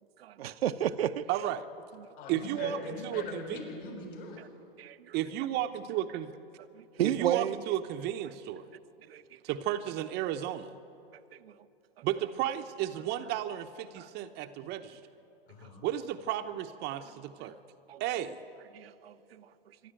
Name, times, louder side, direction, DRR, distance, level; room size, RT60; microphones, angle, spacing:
voice 1, 0.2-1.3 4.4-4.5 4.8-5.1 6.7-7.6 9.1-9.2 11.3-11.5 14.0-14.1 17.4-17.5 17.9-18.0 18.7-19.5, right 10 dB, 70° right, 0.8 m, -33 dB
voice 2, 1.3-1.7 2.3-3.6 5.1-6.3 7.0-8.7 9.4-10.7 12.0-15.0 15.8-17.6 18.0-18.3, right 12 dB, 35° right, 0.8 m, -33 dB
voice 3, 2.2-4.4 15.5-15.8, left 2 dB, 55° left, 6.9 m, -41 dB
26.0 x 12.0 x 8.9 m
hypercardioid pair, 120°, 31 cm